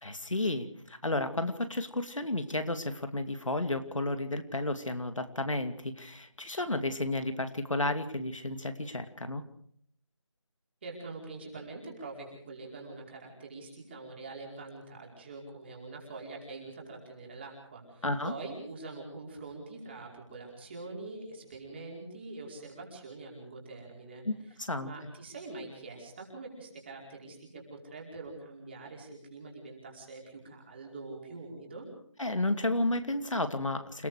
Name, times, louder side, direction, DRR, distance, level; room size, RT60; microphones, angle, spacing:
voice 1, 0.0-9.4 18.0-18.3 24.2-24.9 32.2-34.1, left 2 dB, 85° left, 8 dB, 2.6 m, -32 dB
voice 2, 10.8-24.2 24.8-31.9, right 3 dB, 20° right, -1 dB, 4.9 m, -44 dB
29.0 x 18.0 x 5.0 m, 0.63 s
figure-of-eight pair, 170°, 16 cm